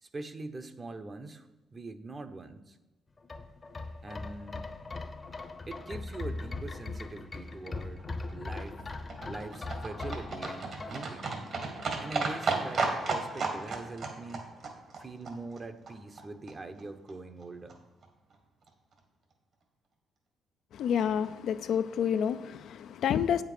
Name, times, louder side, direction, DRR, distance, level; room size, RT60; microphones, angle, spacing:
voice 1, 0.0-2.8 4.0-4.7 5.7-8.8 9.2-11.3 12.0-14.5 15.0-17.8, right 2 dB, 30° right, 9 dB, 0.8 m, -43 dB
sound 1, 3.2-12.1 12.4-12.5, left 3 dB, 30° left, 0.8 m, -40 dB
Livestock farm animals working animals, 8.0-16.2 16.5-16.6 16.8-16.9 17.1-17.2 17.4-17.5 17.7-17.8 18.0-18.1 18.3-18.4 18.7-18.8, right 4 dB, 60° right, 2.1 m, -34 dB
voice 2, 20.7-23.4, left 8 dB, 75° left, 11 dB, 0.4 m, -29 dB
8.8 x 7.3 x 5.0 m, 1.1 s
cardioid pair, 90°, 0 cm